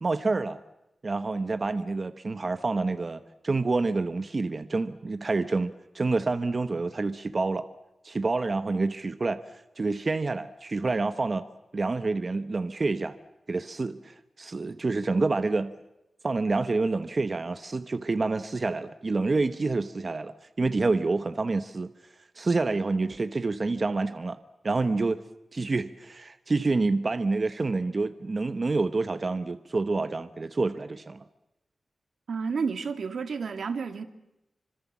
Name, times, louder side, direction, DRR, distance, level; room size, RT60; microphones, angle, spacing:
voice 1, 0.0-0.6 1.0-7.7 8.0-11.4 11.7-13.1 13.5-15.7 16.2-21.9 22.3-24.4 24.6-25.2 25.5-31.2, right 3 dB, 40° right, 1.0 m, -28 dB
voice 2, 32.3-34.0, right 5 dB, 80° right, 2.2 m, -31 dB
27.0 x 25.5 x 7.4 m
wide cardioid pair, 130°, 0 cm